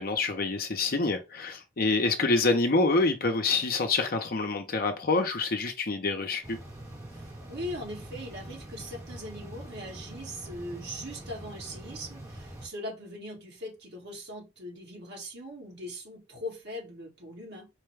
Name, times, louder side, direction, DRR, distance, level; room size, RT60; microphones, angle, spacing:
voice 1, 0.0-6.6, left 3 dB, 45° left, 0.7 m, -26 dB
sound 1, 6.4-12.7, right 1 dB, 15° right, 1.1 m, -44 dB
voice 2, 7.1-17.7, left 1 dB, 55° right, 1.5 m, -40 dB
4.6 x 2.2 x 3.3 m
head